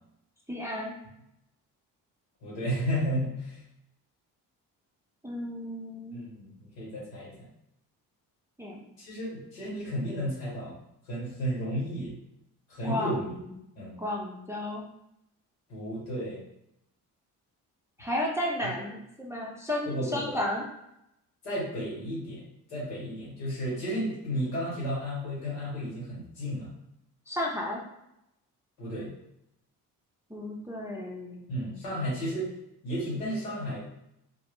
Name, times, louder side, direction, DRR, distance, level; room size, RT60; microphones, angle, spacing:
voice 1, 0.5-0.9 5.2-6.3 8.6-8.8 12.8-13.5 14.0-14.9 18.0-20.6 27.3-27.8 30.3-31.4, left 1 dB, 5° right, -3 dB, 0.4 m, -33 dB
voice 2, 2.4-3.6 6.1-7.5 9.0-10.8 11.1-12.2 12.7-13.3 13.8-14.0 15.7-16.4 18.6-18.7 19.9-20.4 21.4-22.4 22.7-26.7 28.8-29.1 31.5-32.5 32.8-34.0, equal, 85° left, -6 dB, 1.1 m, -33 dB
2.1 x 2.0 x 3.0 m, 0.83 s
hypercardioid pair, 45°, 49 cm